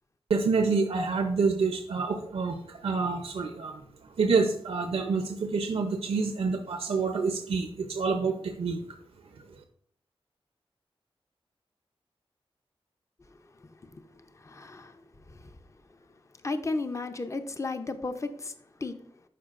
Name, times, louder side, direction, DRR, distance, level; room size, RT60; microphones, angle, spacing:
voice 1, 0.3-2.6 2.8-3.8 4.2-8.8, right 4 dB, 80° right, 5 dB, 0.7 m, -27 dB
voice 2, 14.3-15.0 15.3-15.5 16.4-18.5 18.8-19.0, left 3 dB, 30° left, 8 dB, 0.6 m, -34 dB
12.0 x 4.7 x 2.5 m, 0.65 s
wide cardioid pair, 80°, 10 cm